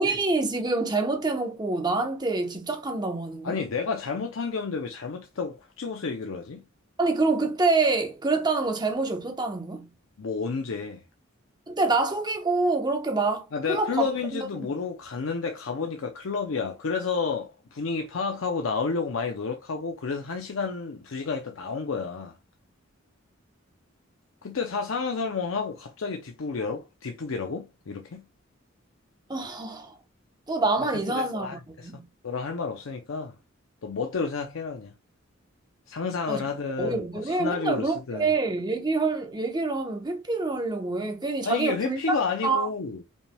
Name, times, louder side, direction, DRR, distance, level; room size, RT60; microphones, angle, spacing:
voice 1, 0.0-3.6 7.0-9.8 11.7-14.1 14.3-14.4 29.3-30.0 30.5-31.5 31.8-32.0 36.3-36.4 36.8-42.2 42.4-42.7, right 3 dB, 20° right, 0.9 m, -26 dB
voice 2, 3.4-6.6 10.2-11.0 13.5-22.4 24.4-28.2 31.1-31.9 32.2-33.4 33.8-34.9 35.9-38.3 41.4-43.0, left 4 dB, 85° left, 0.6 m, -31 dB
5.3 x 3.3 x 2.2 m
head